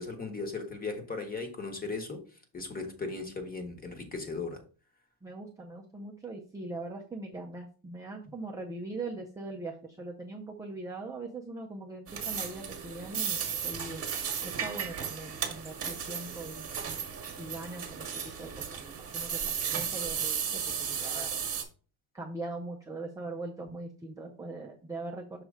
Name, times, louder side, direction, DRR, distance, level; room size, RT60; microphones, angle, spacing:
voice 1, 0.0-2.2 2.5-4.6, left 3 dB, 20° left, 5 dB, 1.1 m, -37 dB
voice 2, 5.2-14.1 14.4-16.7 17.4-19.4 19.7-21.4 22.1-25.4, right 2 dB, 10° right, -1 dB, 0.4 m, -41 dB
sound 1, 12.1-21.6, right 7 dB, 30° right, 1.2 m, -35 dB
6.4 x 3.1 x 4.8 m, 0.38 s
cardioid pair, 160°, 48 cm